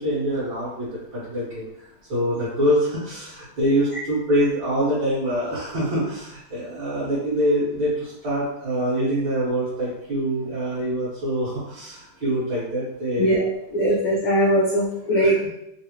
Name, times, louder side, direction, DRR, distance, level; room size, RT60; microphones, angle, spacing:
voice 1, 0.0-13.4 15.2-15.5, equal, 60° right, -11 dB, 2.4 m, -25 dB
voice 2, 13.7-15.5, right 1 dB, 85° left, -3 dB, 0.8 m, -20 dB
4.5 x 2.1 x 3.0 m, 0.80 s
omnidirectional pair, 2.4 m